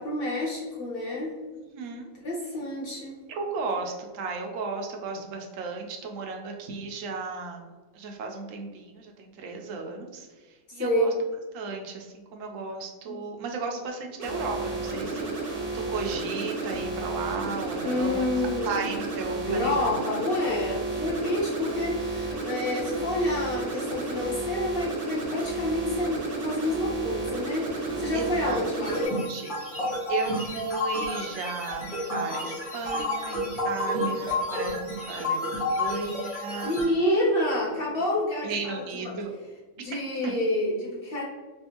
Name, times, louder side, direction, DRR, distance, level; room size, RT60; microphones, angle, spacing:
voice 1, 0.0-1.4 2.2-3.2 10.8-11.1 13.1-13.2 17.8-18.9 19.5-29.0 36.6-38.8 39.1-39.2 39.8-41.2, left 1 dB, 55° left, -5 dB, 0.7 m, -28 dB
voice 2, 1.5-2.1 3.3-11.1 11.5-15.3 15.7-18.3 18.7-19.9 20.5-20.6 28.1-28.6 29.3-31.8 32.1-36.7 38.4-39.3 40.2-40.3, right 4 dB, 70° right, 2 dB, 0.9 m, -35 dB
sound 1, 14.2-29.1, right 3 dB, 40° right, 0.6 m, -32 dB
sound 2, 28.9-36.8, left 1 dB, 25° left, 1.3 m, -30 dB
3.4 x 2.4 x 2.8 m, 1.3 s
omnidirectional pair, 1.5 m